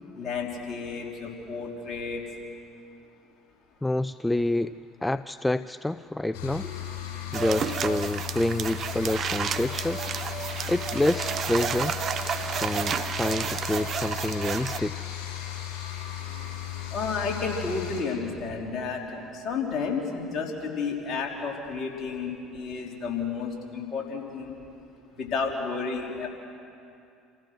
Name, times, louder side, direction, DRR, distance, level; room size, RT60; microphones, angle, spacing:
voice 1, 0.2-2.2 6.6-6.7 16.9-24.5 25.2-26.3, left 5 dB, 45° left, 0 dB, 3.6 m, -31 dB
voice 2, 3.8-4.7 5.0-6.7 7.3-10.1 10.7-12.0 12.6-15.1, left 1 dB, 10° left, 14 dB, 0.4 m, -28 dB
sound 1, 6.3-18.0, left 11 dB, 65° left, 4.9 m, -36 dB
sound 2, 7.3-14.8, right 7 dB, 45° right, 0.8 m, -31 dB
27.5 x 15.5 x 6.2 m, 2.6 s
hypercardioid pair, 65°, 0 cm